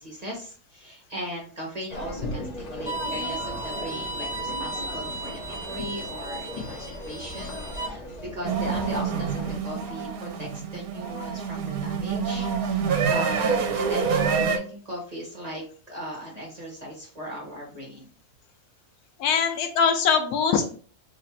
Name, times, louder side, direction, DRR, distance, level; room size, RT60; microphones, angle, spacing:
voice 1, 0.0-8.0 8.3-18.1, equal, 30° right, -2 dB, 0.9 m, -38 dB
sound 1, 1.9-9.6, left 2 dB, 60° left, 0.4 m, -37 dB
Bowed string instrument, 2.9-7.9, right 2 dB, 40° left, 1.7 m, -35 dB
sound 2, 8.5-14.6, right 6 dB, 70° right, 1.1 m, -26 dB
voice 2, 19.2-20.8, left 6 dB, 75° left, 6 dB, 1.0 m, -22 dB
3.1 x 2.4 x 4.2 m, 0.42 s
omnidirectional pair, 1.7 m